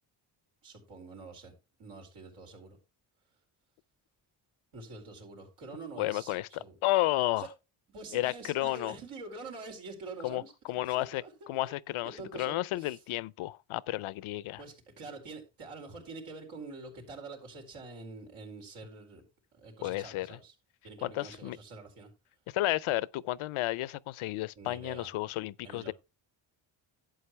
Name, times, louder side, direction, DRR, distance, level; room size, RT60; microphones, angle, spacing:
voice 1, 0.6-1.5 1.8-2.8 4.7-6.8 7.4-7.5 7.9-11.7 12.0-13.0 14.6-19.2 19.5-20.5 20.8-22.1 24.6-25.1 25.6-25.9, right 3 dB, 90° right, 4.6 m, -46 dB
voice 2, 6.0-7.5 8.1-8.9 10.2-10.4 10.7-14.6 19.8-20.4 21.0-21.6 22.5-25.9, left 16 dB, 80° left, 0.6 m, -32 dB
11.5 x 8.1 x 3.2 m
cardioid pair, 65°, 49 cm